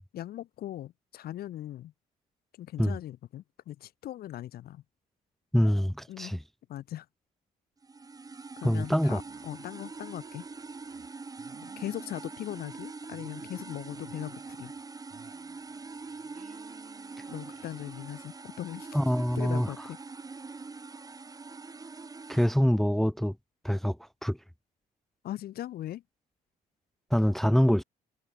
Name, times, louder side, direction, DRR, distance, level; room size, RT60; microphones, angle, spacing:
voice 1, 0.1-1.9 2.5-4.8 6.1-6.4 6.7-7.1 8.6-10.5 11.6-14.7 17.3-19.0 19.4-20.0 25.2-26.0, left 13 dB, 65° left, 1.9 m, -39 dB
voice 2, 5.5-6.4 8.6-9.2 18.9-19.7 22.3-23.4 23.6-24.4 27.1-27.8, equal, ahead, 0.8 m, -25 dB
sound 1, 7.8-22.5, right 4 dB, 20° right, 3.0 m, -44 dB
sound 2, 9.0-11.1 11.4-12.8 13.1-14.8 15.1-18.3, right 8 dB, 45° right, 5.0 m, -57 dB
cardioid pair, 110°, 17 cm